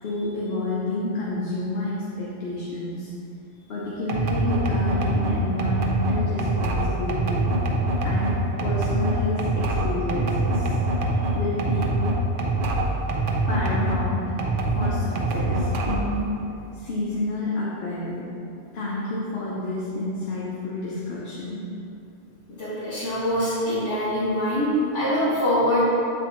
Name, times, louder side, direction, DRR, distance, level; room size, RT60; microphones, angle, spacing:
voice 1, 0.0-3.1 3.7-7.5 8.0-10.8 11.3-11.9 13.5-14.3 14.7-16.4 16.7-18.3 18.7-21.6, left 2 dB, 60° left, -5 dB, 0.9 m, -29 dB
sound 1, 4.1-14.0 14.4-16.2, right 2 dB, 55° right, 0.7 m, -24 dB
voice 2, 22.6-25.9, equal, 85° left, -13 dB, 1.9 m, -23 dB
7.9 x 4.2 x 3.0 m, 2.8 s
omnidirectional pair, 1.2 m